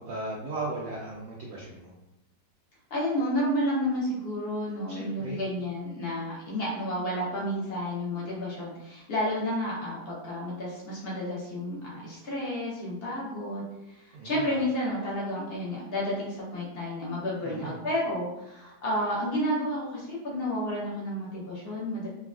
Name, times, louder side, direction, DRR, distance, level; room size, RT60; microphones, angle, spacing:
voice 1, 0.0-1.9 4.9-5.4 14.1-14.6 17.4-17.8, right 2 dB, 80° right, -3 dB, 0.7 m, -37 dB
voice 2, 2.9-13.6 13.9-22.1, equal, 60° left, -5 dB, 0.6 m, -31 dB
3.2 x 2.2 x 2.4 m, 0.93 s
omnidirectional pair, 2.0 m